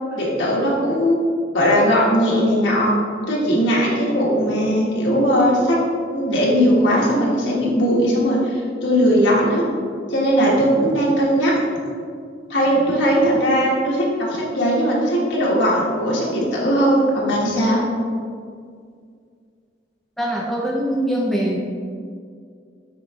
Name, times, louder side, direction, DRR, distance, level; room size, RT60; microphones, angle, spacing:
voice 1, 0.1-1.2 1.5-2.9 3.3-5.8 6.1-9.6 10.1-11.5 12.5-17.8, equal, 75° left, -5 dB, 1.3 m, -18 dB
voice 2, 20.2-21.6, right 1 dB, ahead, -3 dB, 0.4 m, -22 dB
8.0 x 4.0 x 3.1 m, 2.2 s
head